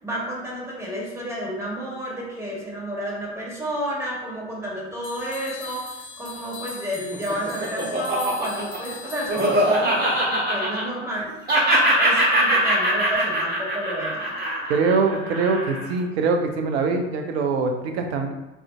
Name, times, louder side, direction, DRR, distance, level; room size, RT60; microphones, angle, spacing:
voice 1, 0.0-11.3 12.0-14.3, equal, 10° right, -5 dB, 1.3 m, -30 dB
sound 1, 5.0-10.3, left 2 dB, 15° left, 1.1 m, -39 dB
Laughter, 6.9-11.2 11.5-15.9, right 1 dB, 25° right, 1.3 m, -22 dB
voice 2, 14.7-18.3, right 4 dB, 65° right, 5 dB, 0.6 m, -23 dB
4.3 x 2.5 x 2.2 m, 1.0 s
figure-of-eight pair, 65°, 36 cm